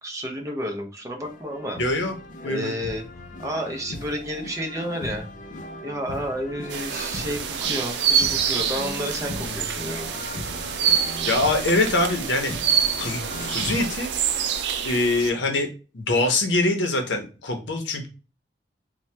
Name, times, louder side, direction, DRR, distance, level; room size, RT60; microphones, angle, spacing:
voice 1, 0.0-1.8 2.4-3.0 3.4-5.3 5.8-10.1, equal, 15° right, 2 dB, 0.5 m, -31 dB
sound 1, 1.2-13.9, left 2 dB, 45° left, 0.4 m, -38 dB
voice 2, 1.8-2.2 2.4-2.7 11.3-12.5 12.9-13.2 13.5-14.1 14.8-15.7 15.9-18.1, left 2 dB, 80° left, 4 dB, 0.7 m, -23 dB
sound 2, 6.7-15.3, right 8 dB, 65° right, 0.4 m, -26 dB
2.7 x 2.1 x 3.2 m, 0.34 s
head